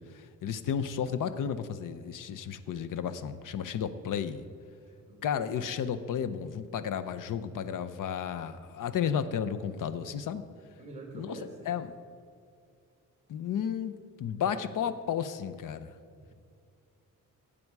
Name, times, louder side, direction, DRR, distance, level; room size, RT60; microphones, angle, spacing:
voice 1, 0.0-4.4 5.2-10.4 11.1-11.4 11.7-11.9 13.3-15.9, left 8 dB, 75° left, 12 dB, 0.8 m, -33 dB
voice 2, 5.0-5.7 10.7-11.8 16.1-16.3, right 2 dB, 20° right, 2 dB, 3.3 m, -47 dB
17.5 x 8.6 x 4.7 m, 2.3 s
wide cardioid pair, 145°, 32 cm